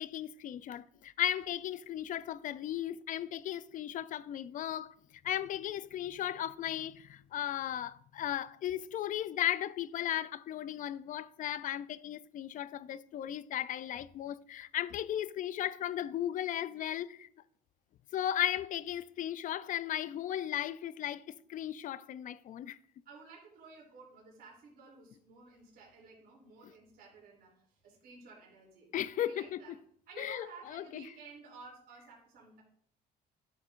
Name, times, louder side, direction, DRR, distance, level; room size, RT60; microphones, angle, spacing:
voice 1, 0.0-4.9 5.2-17.3 18.1-22.8 28.9-29.6 30.2-31.0, left 11 dB, 50° left, 0.4 m, -36 dB
voice 2, 23.0-28.9 29.1-29.7 30.1-32.6, right 4 dB, 65° right, 3.1 m, -54 dB
11.5 x 7.1 x 2.5 m
cardioid pair, 110°, 17 cm